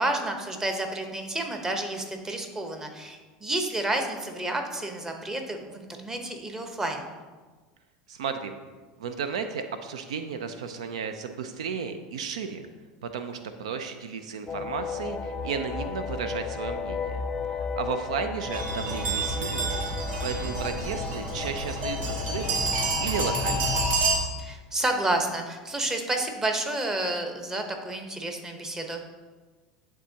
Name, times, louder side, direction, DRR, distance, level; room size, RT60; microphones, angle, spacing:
voice 1, 0.0-7.1 24.4-29.0, right 2 dB, 15° right, 4 dB, 0.9 m, -30 dB
voice 2, 8.1-8.5 9.0-12.7 13.0-17.2 17.5-19.8 20.2-22.7 23.0-23.8, right 6 dB, 90° right, 8 dB, 0.4 m, -34 dB
sound 1, 14.5-23.9, left 5 dB, 20° left, 0.5 m, -34 dB
sound 2, 18.5-24.2, right 2 dB, 55° right, 1.6 m, -28 dB
10.0 x 3.6 x 2.8 m, 1.3 s
hypercardioid pair, 95°, 3 cm